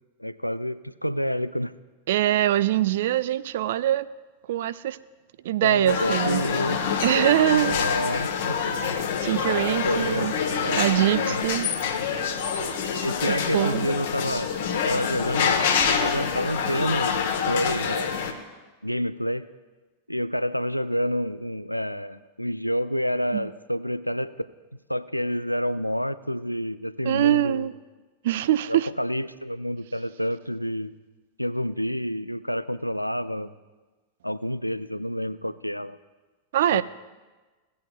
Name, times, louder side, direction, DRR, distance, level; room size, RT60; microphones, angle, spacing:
voice 1, 0.2-1.7 5.6-6.8 7.5-8.7 9.8-11.4 13.0-15.6 16.0-18.2 18.8-19.5 20.1-24.3 24.9-27.7 28.7-30.9 31.4-33.5 34.2-36.0 36.7-36.8, equal, 90° left, 14 dB, 0.3 m, -29 dB
voice 2, 2.1-4.1 4.5-5.0 5.4-6.4 7.0-7.8 9.2-10.3 10.8-11.7 13.3-13.9 23.3-23.5 27.1-27.7 28.2-28.9 36.5-36.8, right 13 dB, 55° right, 16 dB, 0.3 m, -23 dB
sound 1, 5.9-18.3, left 6 dB, 55° left, 1.1 m, -26 dB
Piano, 9.5-12.8, right 2 dB, 80° right, 2.6 m, -43 dB
18.0 x 8.3 x 2.3 m, 1.3 s
figure-of-eight pair, 90°, 0 cm